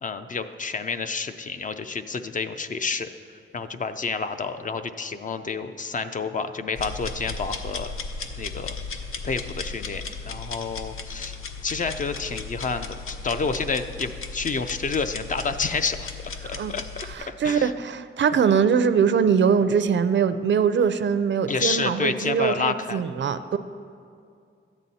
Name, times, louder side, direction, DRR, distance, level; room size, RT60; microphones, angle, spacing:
voice 1, 0.0-3.1 3.5-7.9 8.4-8.8 9.2-11.4 11.6-16.1 16.4-17.7 21.5-23.0, left 4 dB, 40° left, 9 dB, 0.4 m, -29 dB
sound 1, 6.8-17.1, left 4 dB, 80° left, 0.7 m, -35 dB
voice 2, 17.1-23.6, right 6 dB, 60° right, 11 dB, 0.4 m, -22 dB
13.0 x 9.1 x 4.1 m, 2.3 s
wide cardioid pair, 135°, 21 cm